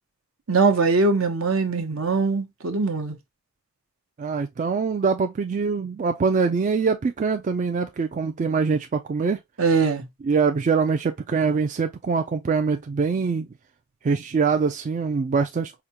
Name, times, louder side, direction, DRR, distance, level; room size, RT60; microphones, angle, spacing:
voice 1, 0.5-3.2 9.6-10.0, right 4 dB, 70° right, 0.9 m, -21 dB
voice 2, 4.2-9.4 10.2-13.5 14.0-15.8, right 5 dB, 35° right, 0.3 m, -23 dB
4.9 x 2.2 x 2.8 m
head